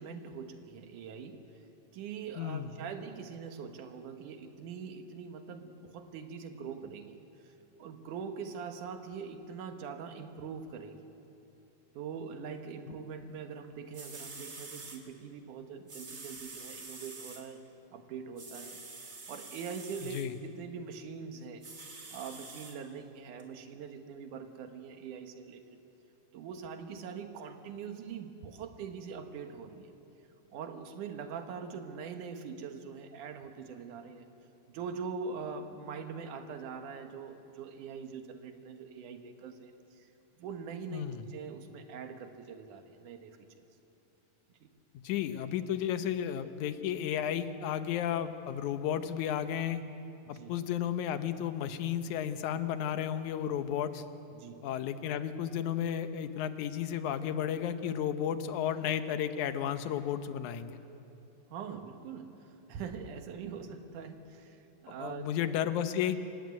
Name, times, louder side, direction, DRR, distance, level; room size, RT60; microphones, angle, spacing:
voice 1, 0.0-1.4 1.9-7.2 7.8-11.1 12.0-17.6 17.9-18.8 19.3-21.6 22.1-25.8 26.3-29.9 30.5-34.3 34.7-39.7 40.4-43.4 44.6-44.7 50.2-50.5 54.3-54.7 61.5-62.4 62.7-65.2, right 6 dB, 75° right, 7 dB, 2.8 m, -43 dB
voice 2, 2.4-2.8 20.0-20.3 40.9-41.2 44.9-49.8 50.3-54.0 54.6-60.8 64.9-66.2, left 9 dB, 75° left, 10 dB, 2.3 m, -33 dB
sound 1, 13.6-13.7 13.9-15.0 15.9-17.4 18.4-20.3 21.6-22.7 23.4-23.5, right 3 dB, 30° right, 2.2 m, -46 dB
26.5 x 16.0 x 9.6 m, 2.9 s
omnidirectional pair, 3.6 m